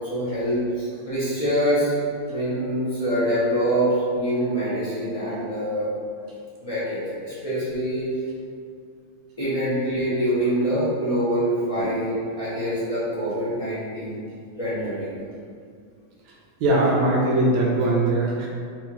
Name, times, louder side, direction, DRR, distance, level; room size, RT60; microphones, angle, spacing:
voice 1, 0.0-1.9 2.3-5.9 6.6-8.0 9.4-14.2 14.6-15.1, equal, 45° left, -10 dB, 0.4 m, -25 dB
voice 2, 16.6-18.5, right 2 dB, 75° right, -3 dB, 1.3 m, -21 dB
4.2 x 2.4 x 2.8 m, 2.2 s
omnidirectional pair, 1.8 m